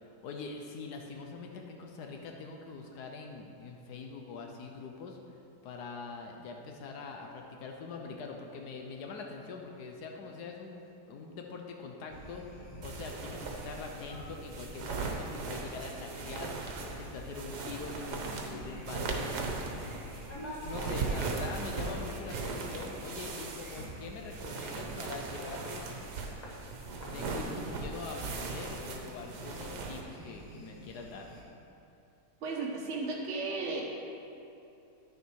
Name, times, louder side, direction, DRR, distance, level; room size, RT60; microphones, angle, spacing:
voice 1, 0.0-5.2 5.6-19.6 20.6-25.9 27.0-31.3, left 4 dB, 75° left, 2 dB, 1.3 m, -43 dB
sound 1, 12.1-31.4, equal, 25° left, 1.3 m, -48 dB
sound 2, 12.8-30.0, right 4 dB, 75° right, 1.5 m, -39 dB
voice 2, 32.4-33.9, right 3 dB, 45° right, -2 dB, 1.3 m, -34 dB
9.7 x 6.8 x 4.6 m, 2.8 s
omnidirectional pair, 1.8 m